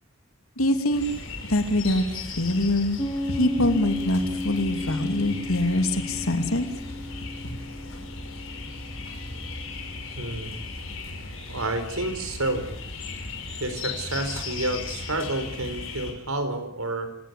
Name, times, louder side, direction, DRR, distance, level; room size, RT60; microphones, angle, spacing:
voice 1, 0.6-1.0 1.5-2.0 2.3-3.0 3.3-6.7 7.4-7.5, left 1 dB, 85° left, 6 dB, 2.9 m, -24 dB
sound 1, 0.9-16.1, left 3 dB, 65° left, 5.5 m, -37 dB
Piano, 3.0-10.2, left 1 dB, 20° left, 2.8 m, -34 dB
voice 2, 10.2-10.5 11.5-12.7 13.6-17.2, right 2 dB, 85° right, 9 dB, 4.6 m, -29 dB
28.5 x 17.5 x 8.4 m, 0.73 s
head